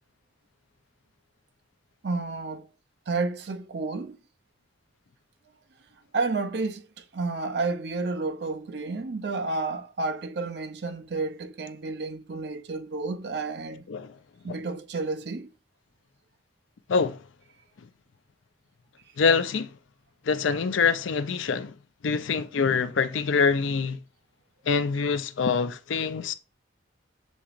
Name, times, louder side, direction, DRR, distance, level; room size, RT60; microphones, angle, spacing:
voice 1, 2.0-2.7 3.1-4.2 6.1-13.8 14.4-15.5, right 3 dB, 60° right, 0.5 m, -31 dB
voice 2, 16.9-17.2 19.2-19.7 20.3-21.7 22.0-24.0 24.7-26.3, left 5 dB, 85° left, 0.5 m, -25 dB
7.1 x 2.9 x 2.4 m
head